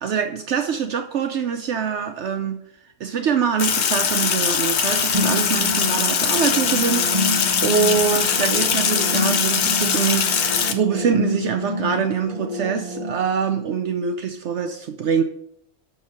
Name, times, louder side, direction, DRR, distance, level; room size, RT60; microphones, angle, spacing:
voice 1, 0.0-2.6 3.0-7.3 7.6-15.2, right 7 dB, 65° right, 6 dB, 0.9 m, -24 dB
Sink (filling or washing), 3.6-10.7, left 7 dB, 65° left, 0.9 m, -21 dB
sound 1, 5.1-13.1, equal, 35° right, 0.6 m, -28 dB
6.4 x 4.4 x 6.6 m, 0.71 s
omnidirectional pair, 1.3 m